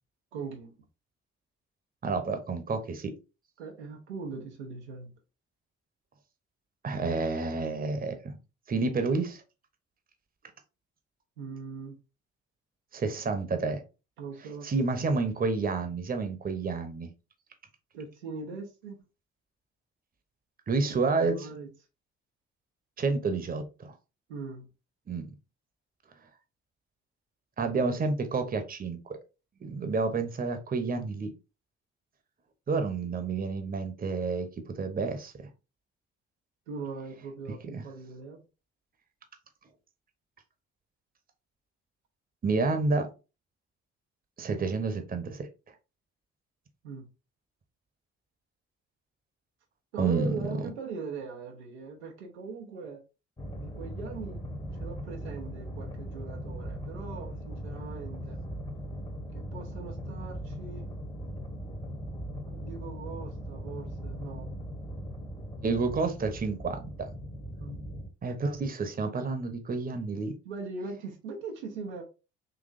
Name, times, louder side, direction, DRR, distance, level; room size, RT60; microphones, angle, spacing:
voice 1, 0.3-0.7 3.6-5.1 11.4-12.0 14.2-14.7 17.9-19.0 21.2-21.7 24.3-24.7 36.7-38.4 46.8-47.1 49.9-53.0 53.6-54.4 54.8-58.4 59.3-60.9 62.5-64.5 67.6-67.8 70.4-72.0, right 4 dB, 85° right, 0.6 m, -40 dB
voice 2, 2.0-3.1 6.8-8.4 8.7-9.4 12.9-13.8 14.6-17.1 20.7-21.5 23.0-23.9 25.1-25.3 27.6-29.0 29.6-31.3 32.7-34.5 34.7-35.5 37.7-37.8 42.4-43.1 44.4-45.5 50.0-50.5 65.6-67.1 68.2-70.3, right 4 dB, 25° right, 0.8 m, -29 dB
sound 1, 53.4-68.1, equal, 15° left, 1.0 m, -39 dB
4.0 x 2.9 x 2.5 m
hypercardioid pair, 45°, 33 cm